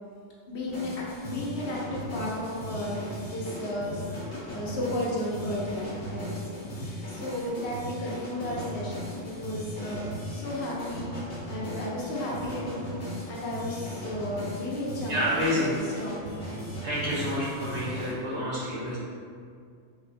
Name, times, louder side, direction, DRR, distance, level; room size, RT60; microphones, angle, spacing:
voice 1, 0.5-4.0 4.5-16.6, left 1 dB, 70° left, -5 dB, 0.9 m, -34 dB
sound 1, 0.7-18.1, equal, 55° left, 1.2 m, -38 dB
voice 2, 15.1-15.8 16.8-19.0, equal, 70° right, -9 dB, 1.5 m, -29 dB
3.7 x 2.2 x 2.6 m, 2.2 s
omnidirectional pair, 1.2 m